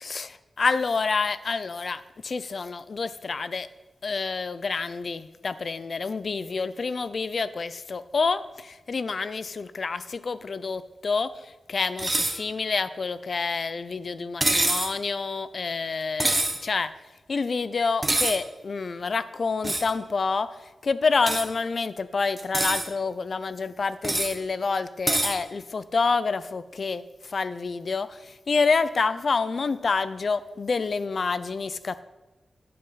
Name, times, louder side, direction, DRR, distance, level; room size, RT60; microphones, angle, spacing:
voice 1, 0.0-3.7 4.0-16.9 17.3-32.0, left 4 dB, 55° left, 14 dB, 0.5 m, -28 dB
sound 1, 12.0-12.4 14.4-14.9 16.2-16.6 18.0-18.4 19.6-19.9 21.3-21.5 22.4-22.9 24.0-24.4 25.1-25.4, right 1 dB, 20° right, 1.3 m, -24 dB
10.0 x 7.7 x 5.8 m, 1.1 s
wide cardioid pair, 100°, 0 cm